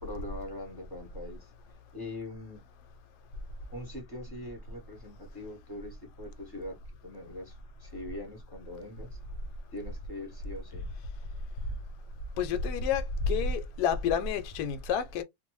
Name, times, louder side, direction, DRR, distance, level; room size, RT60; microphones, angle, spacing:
voice 1, 0.0-1.5 1.9-2.6 3.7-9.2 9.7-10.9, left 1 dB, 20° left, 0.6 m, -42 dB
voice 2, 12.4-15.2, left 6 dB, 80° left, 1.1 m, -29 dB
2.6 x 2.1 x 3.0 m
omnidirectional pair, 1.7 m